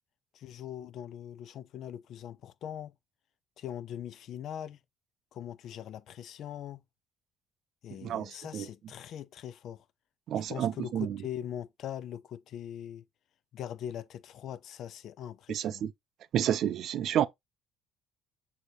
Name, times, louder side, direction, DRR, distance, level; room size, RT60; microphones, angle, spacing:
voice 1, 0.3-2.9 3.6-4.8 5.3-6.8 7.8-9.8 10.5-13.0 13.5-15.8, left 10 dB, 60° left, 0.3 m, -41 dB
voice 2, 8.0-8.7 10.3-11.2 15.5-15.9 16.3-17.3, right 10 dB, 60° right, 0.3 m, -30 dB
6.4 x 2.8 x 2.9 m
hypercardioid pair, 65°, 0 cm